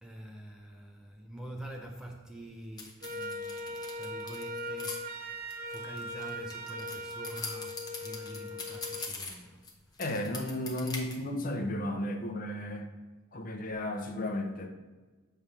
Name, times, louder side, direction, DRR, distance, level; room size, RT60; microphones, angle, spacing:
voice 1, 0.0-5.3 5.6-9.7, right 1 dB, 5° right, 0.5 m, -46 dB
sound 1, 2.8-5.0 5.5-9.7 10.0-11.2, left 4 dB, 20° left, 0.9 m, -41 dB
Wind instrument woodwind instrument, 3.0-9.1, equal, 45° right, 0.6 m, -40 dB
voice 2, 10.0-12.9 13.3-14.7, left 1 dB, 40° left, 0.8 m, -34 dB
7.0 x 3.4 x 6.1 m
head